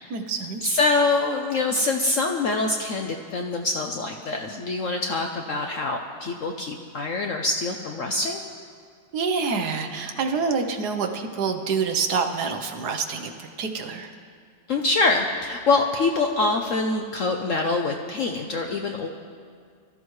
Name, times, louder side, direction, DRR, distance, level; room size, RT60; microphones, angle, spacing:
voice 1, 0.1-0.7 9.1-13.3 13.6-14.1, right 5 dB, 65° right, 5 dB, 1.4 m, -27 dB
voice 2, 0.6-8.4 14.7-19.1, left 3 dB, 60° left, 3 dB, 0.8 m, -25 dB
21.5 x 13.5 x 3.2 m, 2.1 s
omnidirectional pair, 2.0 m